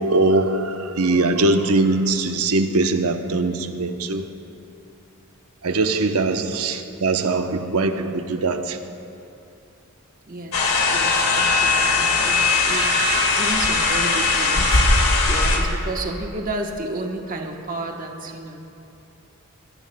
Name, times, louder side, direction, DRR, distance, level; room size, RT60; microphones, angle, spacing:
voice 1, 0.0-4.3 5.6-8.8, right 2 dB, 90° right, 0.8 m, -21 dB
voice 2, 10.3-18.6, right 2 dB, 40° right, 1.0 m, -32 dB
sound 1, 10.5-15.6, left 3 dB, 90° left, 1.8 m, -19 dB
21.5 x 16.0 x 2.2 m
head